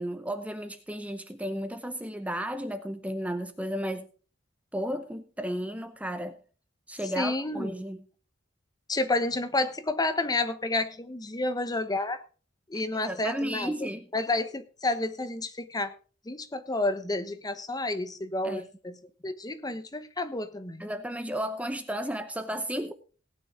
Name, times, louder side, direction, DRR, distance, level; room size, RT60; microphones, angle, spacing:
voice 1, 0.0-4.1 4.7-6.4 6.9-8.0 12.7-14.1 18.4-18.6 20.8-22.9, equal, 5° right, 9 dB, 0.8 m, -33 dB
voice 2, 7.2-7.7 8.9-12.2 12.7-13.7 14.1-15.9 16.3-18.9 19.2-20.9, left 2 dB, 20° left, 11 dB, 1.1 m, -30 dB
18.0 x 9.2 x 3.7 m, 0.38 s
head